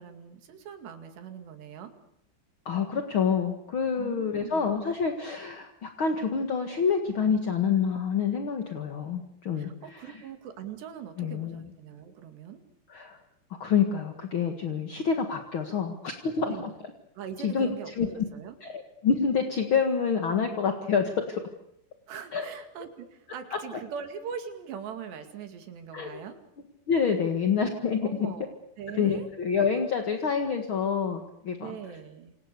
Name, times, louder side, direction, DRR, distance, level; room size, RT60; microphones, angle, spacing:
voice 1, 0.0-1.9 4.0-4.8 9.6-12.6 16.4-16.8 17.2-18.6 22.1-26.4 28.0-29.3 31.6-32.3, right 7 dB, 80° right, 7 dB, 4.5 m, -41 dB
voice 2, 2.7-10.2 11.2-11.7 12.9-13.2 13.6-16.7 17.4-17.7 18.0-18.1 18.6-21.4 22.3-22.5 25.9-26.2 26.9-28.3 28.9-31.7, left 6 dB, 45° left, 5 dB, 1.7 m, -27 dB
28.0 x 27.0 x 6.9 m, 0.76 s
omnidirectional pair, 4.8 m